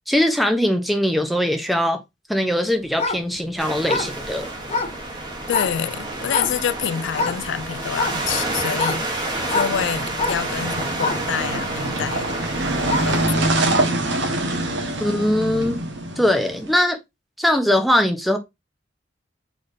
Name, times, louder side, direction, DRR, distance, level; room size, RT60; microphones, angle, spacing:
voice 1, 0.1-2.0 2.3-4.5 15.0-15.8 16.2-17.0 17.4-18.4, left 1 dB, ahead, 0.6 m, -21 dB
sound 1, 2.9-5.8 6.3-6.8 7.1-7.5 7.9-13.3 13.7-13.8, left 3 dB, 35° left, 0.7 m, -27 dB
sound 2, 3.6-13.2, right 2 dB, 25° right, 1.0 m, -29 dB
voice 2, 5.5-12.3 13.0-13.6 15.0-15.1, left 8 dB, 80° left, 0.3 m, -27 dB
sound 3, 9.7-16.7, right 2 dB, 85° right, 1.1 m, -25 dB
4.1 x 3.3 x 2.6 m
head